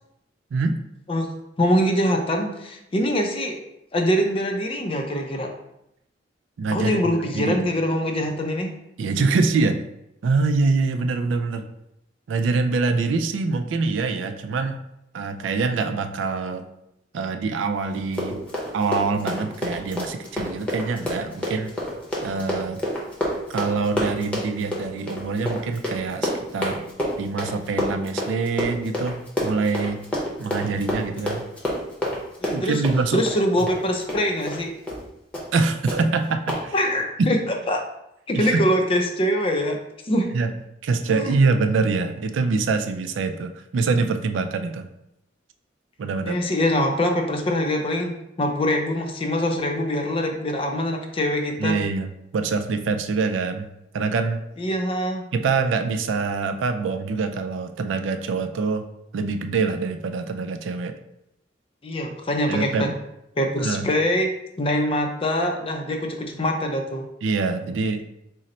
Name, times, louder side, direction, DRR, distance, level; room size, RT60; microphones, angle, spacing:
voice 1, 1.1-3.6 3.9-5.5 6.7-8.7 32.4-32.8 33.1-34.8 36.7-37.4 37.7-37.8 38.3-39.8 40.0-40.3 41.1-41.4 46.3-51.8 54.6-55.2 61.8-62.9 63.4-64.3 64.6-67.0, equal, 30° left, 3 dB, 0.5 m, -24 dB
voice 2, 6.6-7.0 7.3-7.6 9.0-9.8 10.2-11.7 12.3-14.8 15.1-16.7 17.1-18.4 18.7-21.7 22.2-22.8 23.5-26.8 27.2-30.0 30.4-31.4 32.5-33.2 35.5-36.7 38.3-38.6 40.3-40.5 40.8-44.9 46.0-46.4 51.6-53.7 53.9-54.4 55.3-58.9 59.1-60.9 62.5-62.9 63.6-63.8 67.2-68.0, right 4 dB, 85° right, 7 dB, 0.4 m, -24 dB
Run, 18.0-34.6 34.9-35.0 35.3-35.6 35.9-36.0 36.5-36.6, left 1 dB, 5° left, 0.8 m, -28 dB
3.8 x 2.1 x 4.1 m, 0.82 s
head